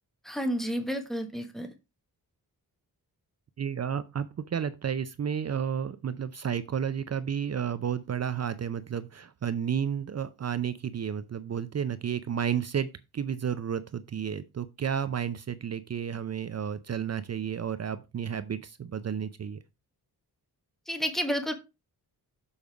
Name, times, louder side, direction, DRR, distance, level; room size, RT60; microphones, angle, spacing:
voice 1, 0.2-1.7 20.9-21.5, equal, ahead, 1.3 m, -30 dB
voice 2, 3.6-19.6, right 8 dB, 45° right, 0.5 m, -32 dB
7.1 x 5.2 x 4.7 m
wide cardioid pair, 140°, 38 cm